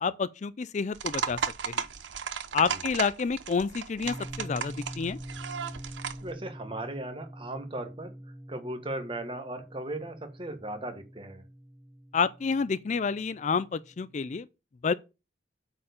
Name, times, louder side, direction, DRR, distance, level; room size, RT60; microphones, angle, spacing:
voice 1, 0.0-1.4 1.7-1.8 2.5-5.2 12.1-14.5 14.8-14.9, left 5 dB, 40° left, 0.4 m, -29 dB
sound 1, 0.9-6.3, right 7 dB, 75° right, 0.9 m, -35 dB
sound 2, 4.0-14.2, equal, 5° right, 1.0 m, -45 dB
voice 2, 6.2-8.1 8.5-11.4, right 1 dB, 30° right, 1.5 m, -37 dB
8.6 x 4.6 x 6.9 m
head